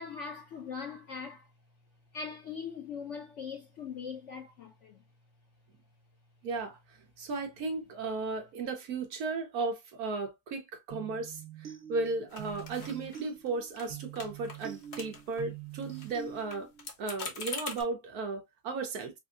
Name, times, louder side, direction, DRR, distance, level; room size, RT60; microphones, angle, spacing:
voice 1, 0.0-1.5 2.1-5.0, left 6 dB, 65° left, 0.7 m, -41 dB
voice 2, 6.4-6.8 7.2-16.7 17.0-19.1, right 3 dB, 65° right, 1.4 m, -35 dB
sound 1, 10.9-16.9, right 10 dB, 50° right, 1.3 m, -45 dB
sound 2, 12.3-13.5 13.8-13.9 14.2-15.4 15.7-17.8, left 4 dB, 45° left, 1.1 m, -43 dB
4.7 x 2.0 x 2.5 m
omnidirectional pair, 1.8 m